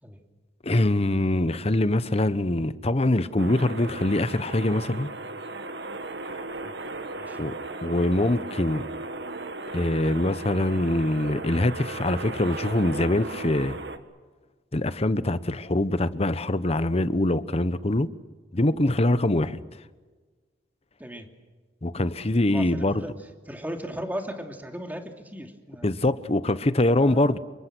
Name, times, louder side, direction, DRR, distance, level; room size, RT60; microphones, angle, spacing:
voice 1, 0.6-5.1 7.4-7.5 7.8-8.8 9.7-13.8 14.7-18.1 18.5-19.6 21.8-23.0 25.8-27.4, left 1 dB, 35° left, 14 dB, 1.0 m, -24 dB
sound 1, 3.4-14.0, right 2 dB, 70° right, 1.7 m, -36 dB
voice 2, 22.5-23.1 23.5-26.0 26.9-27.4, equal, 10° right, 4 dB, 2.8 m, -37 dB
28.0 x 24.0 x 6.2 m, 1.4 s
head